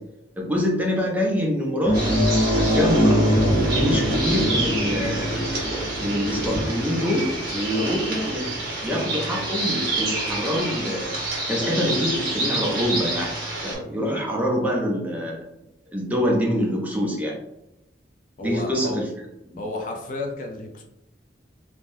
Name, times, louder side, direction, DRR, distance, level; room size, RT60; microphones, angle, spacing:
voice 1, 0.4-2.2 2.5-3.2 3.7-5.4 6.0-13.3 13.6-15.4 15.9-17.4 18.4-19.1, equal, 10° right, -2 dB, 0.5 m, -25 dB
Movie Horn, 1.8-10.8 11.1-11.3 13.4-13.5, equal, 85° left, 1.1 m, -24 dB
sound 1, 1.9-13.7, right 2 dB, 55° right, 1.1 m, -29 dB
voice 2, 18.4-19.0 19.6-20.8, left 2 dB, 45° left, 2 dB, 0.4 m, -32 dB
3.3 x 2.1 x 2.6 m, 0.87 s
head